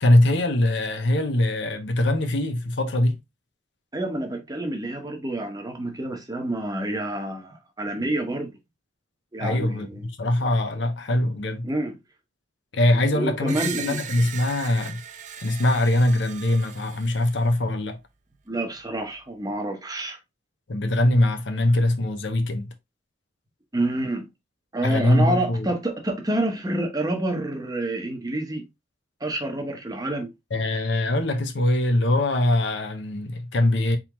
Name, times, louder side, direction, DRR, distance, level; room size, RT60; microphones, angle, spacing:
voice 1, 0.0-3.2 9.4-11.7 12.7-15.0 15.4-18.0 20.7-22.7 24.8-25.7 30.5-34.0, left 1 dB, 65° left, 0.7 m, -22 dB
voice 2, 3.9-8.5 9.3-10.1 11.6-12.0 13.1-14.0 18.5-20.2 23.7-24.3 24.7-28.6 29.2-30.3, right 1 dB, 20° right, 0.9 m, -28 dB
Screech, 13.5-17.5, right 8 dB, 40° right, 0.5 m, -37 dB
4.3 x 3.8 x 2.9 m
head